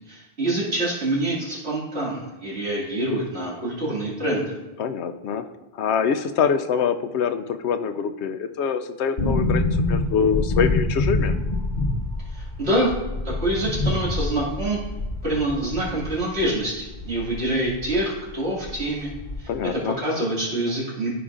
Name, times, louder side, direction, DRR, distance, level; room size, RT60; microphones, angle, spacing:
voice 1, 0.1-4.6 12.3-12.9 13.2-14.8 15.2-19.1 19.4-21.1, right 1 dB, 75° right, -7 dB, 2.7 m, -26 dB
voice 2, 4.8-5.5 5.7-11.3 19.5-20.0, left 7 dB, 90° left, 9 dB, 0.9 m, -24 dB
sound 1, 9.2-18.0 18.3-18.4 18.6-19.7 19.9-20.0, left 2 dB, 50° left, 1.1 m, -26 dB
14.0 x 5.1 x 2.5 m, 1.1 s
omnidirectional pair, 1.1 m